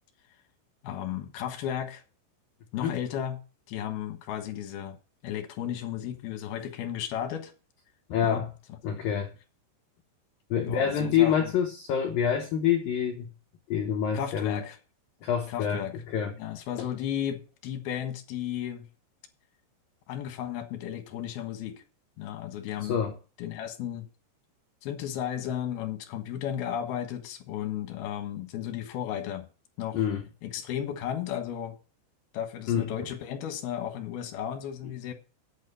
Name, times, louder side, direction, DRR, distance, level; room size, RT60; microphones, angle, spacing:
voice 1, 0.8-2.0 2.7-3.4 3.7-5.0 5.2-7.5 8.2-8.4 8.9-9.0 10.6-11.5 14.1-14.8 15.5-16.0 16.4-18.9 20.1-21.8 22.2-23.0 23.4-24.1 24.8-29.5 29.8-30.0 30.4-31.8 32.3-35.1, left 10 dB, 65° left, 2.7 m, -34 dB
voice 2, 8.1-8.5 8.8-9.3 10.5-13.3 13.7-14.6 15.2-16.4 16.8-16.9 22.8-23.2 29.9-30.2 32.7-32.9, left 8 dB, 90° left, 1.9 m, -27 dB
9.4 x 8.7 x 5.4 m
omnidirectional pair, 5.7 m